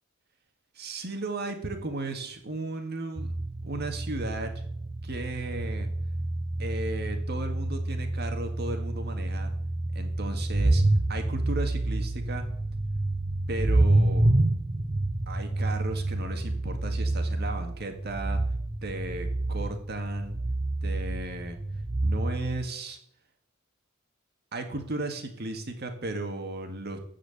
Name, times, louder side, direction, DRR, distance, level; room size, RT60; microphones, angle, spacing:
voice 1, 0.7-3.3 3.6-4.5 5.0-5.9 6.6-9.5 9.9-10.8 11.1-12.5 13.5-14.3 15.3-18.4 18.8-20.3 20.8-21.6 22.0-23.0 24.5-27.0, right 2 dB, 50° right, 5 dB, 1.9 m, -35 dB
sound 1, 3.2-22.6, right 2 dB, 25° right, 0.6 m, -28 dB
14.0 x 5.0 x 8.4 m, 0.67 s
head